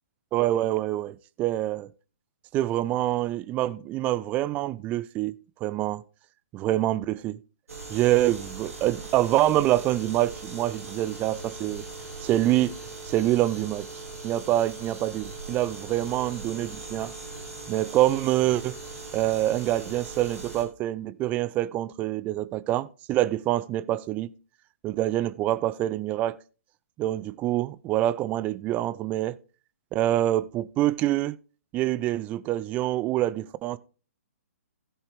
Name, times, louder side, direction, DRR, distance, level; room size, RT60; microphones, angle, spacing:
voice 1, 0.3-1.9 2.5-5.3 5.6-6.0 6.5-7.4 7.9-11.8 12.2-12.8 13.1-13.9 14.2-17.1 17.7-18.8 19.1-24.3 24.8-26.4 27.0-29.4 29.9-31.4 31.7-33.8, right 14 dB, 20° right, 0.4 m, -26 dB
sound 1, 7.7-20.6, right 3 dB, 75° right, 3.2 m, -40 dB
16.0 x 5.4 x 3.4 m
figure-of-eight pair, 125°, 8 cm